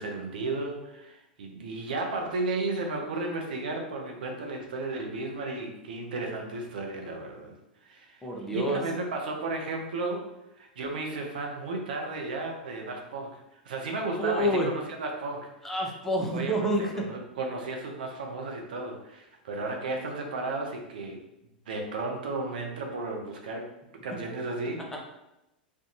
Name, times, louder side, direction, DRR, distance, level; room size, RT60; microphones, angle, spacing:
voice 1, 0.0-7.5 7.8-8.3 8.5-10.3 10.6-15.7 16.3-21.2 21.7-23.7 24.0-25.0, right 2 dB, 70° right, 2 dB, 0.5 m, -34 dB
voice 2, 8.2-8.8 14.2-14.7 15.6-17.0, equal, 5° left, -2 dB, 0.6 m, -28 dB
2.5 x 2.2 x 2.7 m, 0.90 s
figure-of-eight pair, 95°, 5 cm